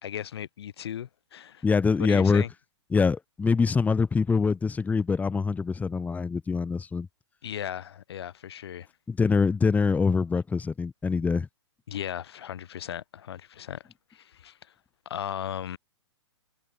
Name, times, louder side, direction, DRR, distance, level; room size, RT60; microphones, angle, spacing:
voice 1, 0.0-1.6 2.1-2.5 7.4-8.9 11.9-13.8 14.1-14.6 15.1-15.8, left 10 dB, 60° left, 4.0 m, -36 dB
voice 2, 1.6-2.4 2.9-7.1 9.1-11.5, left 5 dB, 10° left, 3.0 m, -24 dB
figure-of-eight pair, 115°, 15 cm